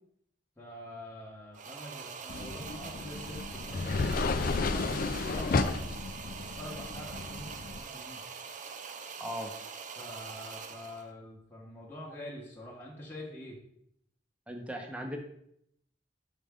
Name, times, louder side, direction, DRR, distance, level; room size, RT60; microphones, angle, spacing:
voice 1, 0.6-5.8 6.2-8.2 10.0-13.6, left 1 dB, 10° left, -5 dB, 1.1 m, -45 dB
sound 1, 1.5-11.1, right 5 dB, 45° right, 0.5 m, -44 dB
sound 2, 2.3-7.8, left 3 dB, 50° left, 0.4 m, -33 dB
voice 2, 9.2-9.5 14.5-15.2, equal, 5° right, 3 dB, 0.8 m, -37 dB
5.3 x 5.0 x 3.5 m, 0.72 s
head